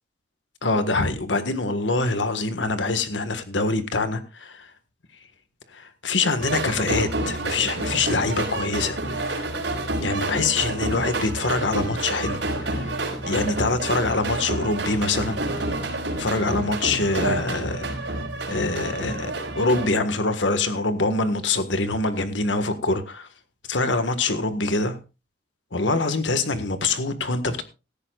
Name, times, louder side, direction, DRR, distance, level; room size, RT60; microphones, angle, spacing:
voice 1, 0.6-4.7 5.7-9.5 10.0-13.0 13.3-15.4 16.2-23.3 23.7-25.0 25.7-27.6, left 3 dB, 85° left, 10 dB, 1.6 m, -25 dB
sound 1, 6.4-19.9, right 2 dB, 80° right, 4.8 m, -29 dB
17.0 x 14.0 x 2.4 m, 0.29 s
head